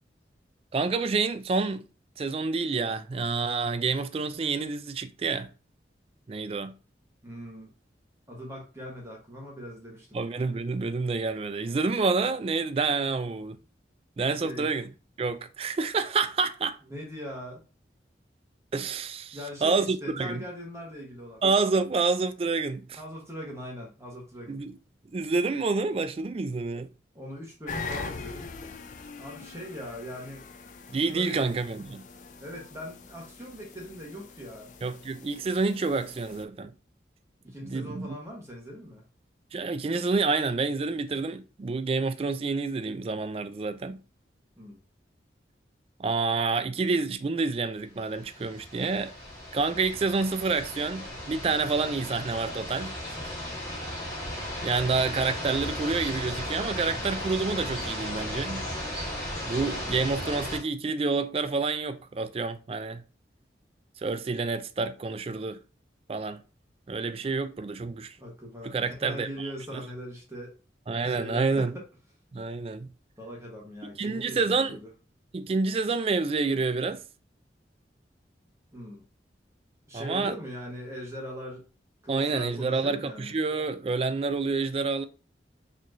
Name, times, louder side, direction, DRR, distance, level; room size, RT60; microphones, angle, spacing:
voice 1, 0.7-1.9 2.2-5.5 6.3-6.8 10.1-13.6 14.2-14.9 15.2-16.8 18.7-20.4 21.4-23.0 24.5-24.7 25.1-26.9 30.9-32.0 34.8-36.7 37.6-38.2 39.5-44.0 46.0-49.1 49.5-53.0 54.6-58.7 59.5-63.0 64.0-65.6 66.1-66.4 66.9-68.1 68.6-69.5 70.9-71.7 72.3-72.9 74.0-74.8 75.3-77.0 79.9-80.3 82.1-85.0, right 4 dB, 35° right, 0.3 m, -28 dB
voice 2, 7.2-7.7 8.3-10.2 14.4-14.7 16.9-17.6 19.3-21.4 23.0-24.6 27.1-28.5 29.2-30.5 31.0-31.5 32.4-34.7 37.4-39.0 44.6-44.8 68.2-70.5 71.0-71.8 73.2-74.9 78.7-79.0 79.9-81.6 82.0-83.3, equal, 15° right, 1.0 m, -41 dB
sound 1, 27.7-36.4, left 4 dB, 45° left, 0.4 m, -42 dB
sound 2, 48.1-60.6, left 1 dB, 15° left, 1.4 m, -36 dB
4.1 x 3.0 x 2.6 m
head